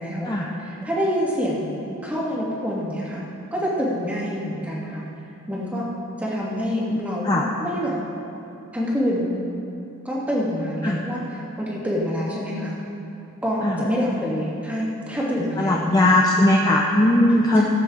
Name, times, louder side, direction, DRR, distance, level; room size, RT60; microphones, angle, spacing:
voice 1, 0.0-1.7 2.0-3.2 3.5-5.0 5.5-5.9 6.2-8.0 8.7-9.3 10.0-12.8 13.4-16.2 17.5-17.6, equal, 5° right, -6 dB, 2.1 m, -26 dB
voice 2, 15.6-17.6, left 1 dB, 15° left, -2 dB, 0.6 m, -18 dB
18.5 x 8.8 x 4.0 m, 2.8 s
head